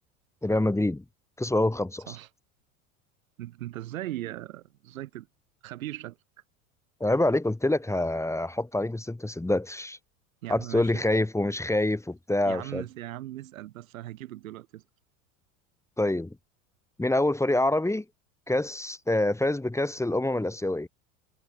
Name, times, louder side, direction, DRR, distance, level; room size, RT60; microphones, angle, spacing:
voice 1, 0.4-1.0 1.4-2.2 7.0-10.0 10.5-12.8 16.0-16.3 17.0-18.0 18.5-20.9, left 1 dB, 5° left, 2.8 m, -26 dB
voice 2, 3.4-5.3 5.6-6.2 10.4-11.0 12.4-14.8, right 15 dB, 75° right, 4.1 m, -38 dB
hypercardioid pair, 80°, 41 cm